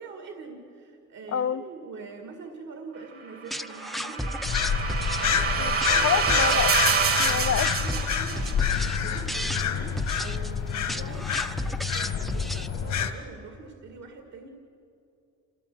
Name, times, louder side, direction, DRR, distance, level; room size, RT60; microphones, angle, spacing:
voice 1, 0.0-4.5 5.1-6.2 7.3-14.5, right 4 dB, 65° right, 2.4 m, -44 dB
voice 2, 1.3-1.6 5.6-5.7 6.0-7.7, left 9 dB, 55° left, 0.7 m, -28 dB
sound 1, 3.5-13.0, equal, ahead, 0.5 m, -34 dB
sound 2, 3.6-8.9, right 5 dB, 50° right, 1.8 m, -27 dB
sound 3, 4.4-13.1, left 7 dB, 70° left, 2.1 m, -28 dB
28.0 x 16.5 x 7.9 m
cardioid pair, 90°, 30 cm